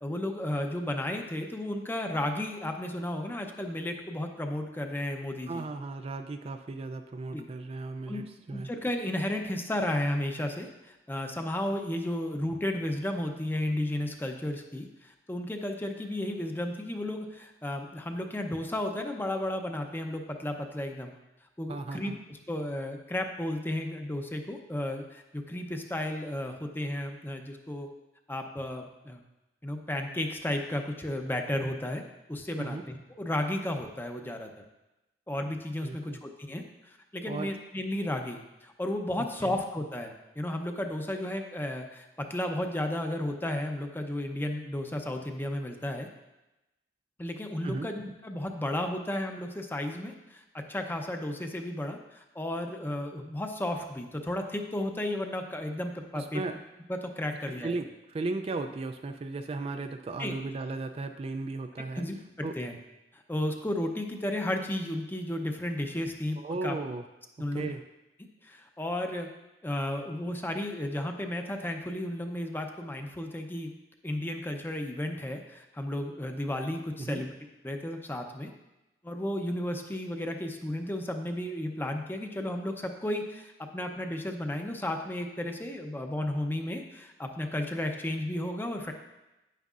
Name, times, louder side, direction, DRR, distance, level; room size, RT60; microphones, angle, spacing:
voice 1, 0.0-5.6 7.3-7.5 8.1-8.2 8.5-21.1 21.6-27.9 28.3-29.2 29.6-32.0 32.3-34.5 35.3-36.6 37.1-46.1 47.2-50.4 50.7-56.4 56.9-57.8 60.2-60.3 62.0-62.7 63.1-66.7 67.4-67.7 68.4-69.3 69.6-73.7 74.0-77.3 77.6-78.5 79.0-88.9, left 1 dB, 10° left, 4 dB, 0.6 m, -33 dB
voice 2, 5.5-8.7 21.7-22.2 32.6-32.8 35.8-36.2 37.2-37.5 39.2-39.5 47.6-47.9 56.1-56.6 57.5-62.0 62.4-62.6 66.4-67.1 67.6-67.8 77.0-77.2, right 3 dB, 35° right, 7 dB, 0.3 m, -36 dB
9.2 x 9.1 x 2.5 m, 1.0 s
head